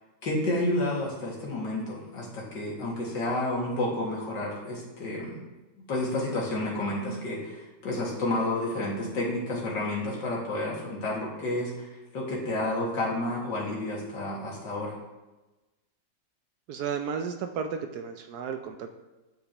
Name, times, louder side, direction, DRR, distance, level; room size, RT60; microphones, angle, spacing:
voice 1, 0.2-5.4 5.9-14.9, left 1 dB, 70° left, -4 dB, 2.6 m, -30 dB
voice 2, 16.7-19.0, right 6 dB, 70° right, 6 dB, 1.0 m, -33 dB
7.6 x 7.3 x 2.9 m, 1.1 s
omnidirectional pair, 2.0 m